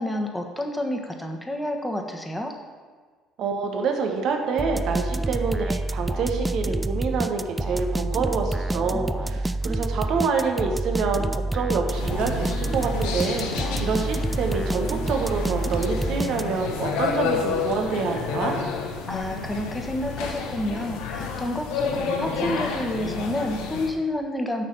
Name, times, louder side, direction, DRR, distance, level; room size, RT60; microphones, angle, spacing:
voice 1, 0.0-2.5 19.1-24.6, left 1 dB, 5° left, 2 dB, 1.3 m, -29 dB
voice 2, 3.4-18.6, right 5 dB, 55° right, 3 dB, 1.2 m, -27 dB
sound 1, 4.6-16.8, right 2 dB, 10° right, 0.3 m, -28 dB
sound 2, 11.9-23.9, left 6 dB, 70° left, 0.9 m, -30 dB
6.6 x 5.7 x 7.3 m, 1.5 s
figure-of-eight pair, 55°, 0 cm